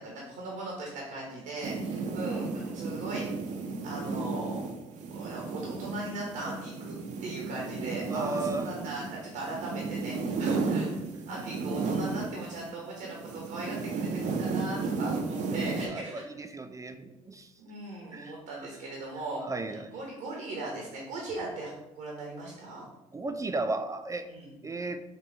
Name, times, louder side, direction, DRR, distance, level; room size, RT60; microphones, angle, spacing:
voice 1, 0.0-4.7 5.1-10.9 11.3-16.2 17.6-22.8 24.3-24.5, right 2 dB, 80° right, -2 dB, 1.1 m, -39 dB
sound 1, 1.6-12.7 13.0-15.9, right 4 dB, 60° right, 0.7 m, -33 dB
voice 2, 8.1-8.7 10.4-10.5 15.8-17.5 18.1-18.3 19.5-19.9 23.1-24.3 24.6-25.0, right 2 dB, 20° right, 7 dB, 0.4 m, -35 dB
4.4 x 2.5 x 4.4 m, 0.95 s
supercardioid pair, 65°, 14 cm